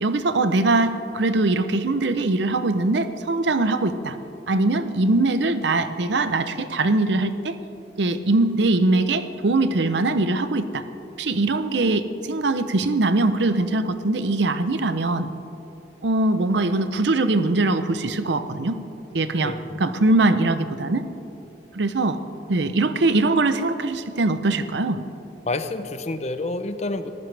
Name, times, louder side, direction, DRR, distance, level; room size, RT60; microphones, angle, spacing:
voice 1, 0.0-4.2 4.5-7.6 8.0-10.8 11.2-15.3 16.0-18.8 19.1-21.0 21.7-22.2 22.5-25.0, right 2 dB, 75° right, 11 dB, 0.7 m, -22 dB
voice 2, 25.4-27.1, left 2 dB, 35° left, 9 dB, 0.7 m, -28 dB
25.0 x 15.0 x 3.4 m, 3.0 s
head